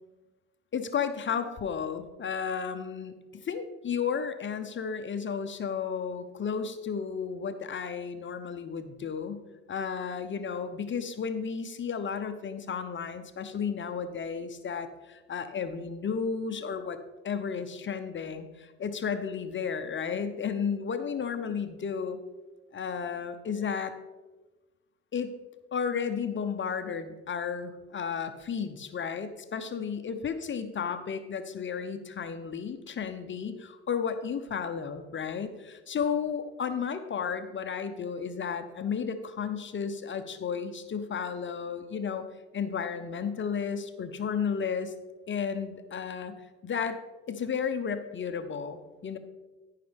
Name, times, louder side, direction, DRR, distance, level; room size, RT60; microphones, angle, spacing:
voice 1, 0.7-3.1 3.4-9.4 9.7-17.0 17.2-22.2 22.7-23.9 25.1-25.3 25.7-42.3 42.5-44.9 45.3-46.3 46.6-47.0 47.3-49.2, left 6 dB, 35° left, 8 dB, 0.9 m, -33 dB
14.0 x 5.7 x 3.5 m, 1.2 s
hypercardioid pair, 70°, 35 cm